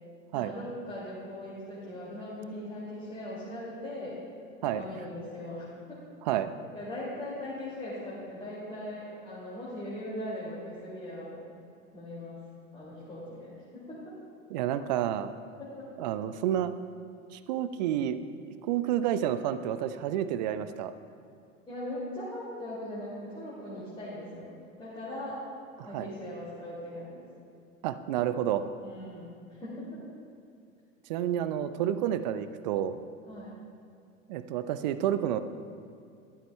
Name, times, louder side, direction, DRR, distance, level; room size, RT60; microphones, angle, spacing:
voice 1, 0.3-4.2 4.7-6.0 6.7-11.4 11.9-12.4 12.7-14.0 15.6-15.9 21.7-24.5 24.8-25.4 25.8-27.3 28.8-30.0 33.2-33.6, left 1 dB, 15° left, -9 dB, 2.3 m, -40 dB
voice 2, 6.2-6.5 14.5-15.3 16.0-16.7 17.3-18.2 18.6-20.9 25.8-26.1 27.8-28.7 31.1-33.0 34.3-35.4, right 11 dB, 35° right, 12 dB, 0.4 m, -29 dB
13.0 x 11.5 x 2.2 m, 2.5 s
figure-of-eight pair, 90°, 40 cm